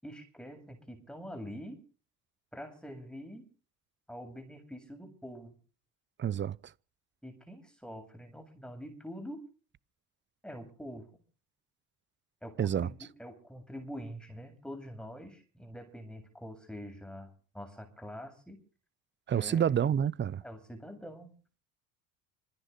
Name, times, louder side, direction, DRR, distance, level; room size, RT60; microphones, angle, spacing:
voice 1, 0.0-1.8 2.5-3.4 4.1-5.6 7.2-9.5 10.4-11.1 12.4-18.6 19.3-19.7 20.4-21.3, equal, ahead, 7.8 m, -45 dB
voice 2, 6.2-6.6 12.6-12.9 19.3-20.4, right 9 dB, 25° right, 0.8 m, -28 dB
26.0 x 10.0 x 5.4 m
figure-of-eight pair, 60°, 45 cm